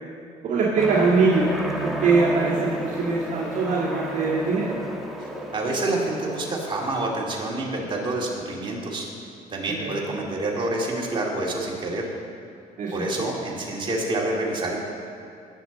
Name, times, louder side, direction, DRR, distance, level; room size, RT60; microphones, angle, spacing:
voice 1, 0.4-4.8 9.8-10.0 12.8-13.1, right 4 dB, 50° right, -6 dB, 1.8 m, -22 dB
Aircraft, 0.8-7.2, right 1 dB, ahead, 1.2 m, -32 dB
voice 2, 5.2-9.1 9.5-12.1 12.9-14.8, right 2 dB, 30° right, -2 dB, 2.4 m, -27 dB
18.5 x 6.9 x 4.0 m, 2.5 s
cardioid pair, 110°, 17 cm